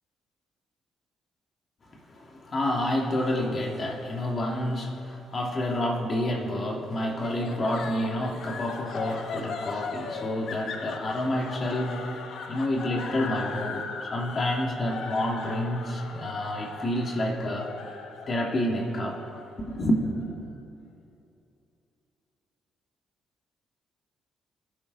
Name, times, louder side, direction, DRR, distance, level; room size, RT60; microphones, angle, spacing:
voice 1, 2.1-12.1 12.5-17.7 18.3-19.4 19.7-20.0, left 1 dB, 40° left, 0 dB, 2.8 m, -29 dB
sound 1, 7.2-20.4, left 4 dB, 65° left, 1.3 m, -39 dB
27.5 x 11.0 x 4.2 m, 2.8 s
cardioid pair, 95°, 0 cm